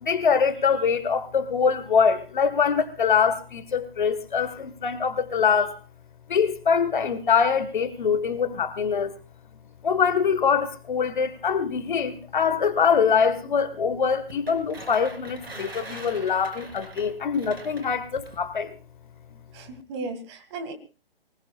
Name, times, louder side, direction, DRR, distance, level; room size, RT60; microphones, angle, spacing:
voice 1, 0.0-5.8 6.3-9.1 9.8-18.7, left 6 dB, 55° left, 1.6 m, -23 dB
sound 1, 14.3-18.4, right 2 dB, 75° right, 3.9 m, -42 dB
voice 2, 19.5-20.7, right 3 dB, 30° right, 2.1 m, -35 dB
23.5 x 19.5 x 2.4 m
figure-of-eight pair, 135°, 30 cm